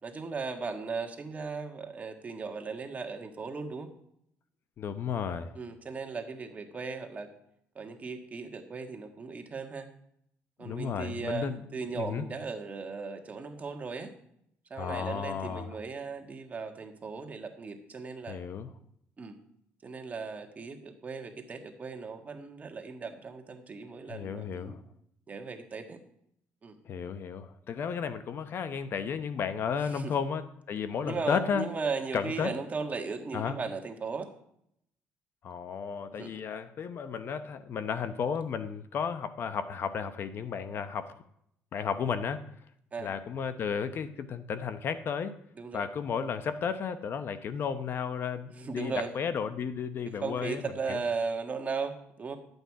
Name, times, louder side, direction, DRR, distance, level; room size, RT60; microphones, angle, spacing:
voice 1, 0.0-3.9 5.5-7.3 7.7-9.9 10.6-14.1 14.7-18.4 19.2-19.4 19.8-24.8 25.3-26.0 26.6-26.8 29.8-30.1 31.0-34.3 36.2-36.4 42.9-43.1 45.6-45.8 48.5-49.1 50.2-52.4, right 4 dB, 30° right, 5 dB, 1.6 m, -37 dB
voice 2, 4.8-5.6 10.6-11.6 11.9-12.2 14.8-15.7 18.3-18.7 24.1-24.8 26.9-31.6 32.1-32.5 33.3-33.6 35.4-41.2 41.7-42.4 43.0-45.4 45.7-51.0, left 6 dB, 50° left, 11 dB, 0.8 m, -33 dB
11.5 x 8.1 x 4.7 m, 0.72 s
cardioid pair, 105°, 5 cm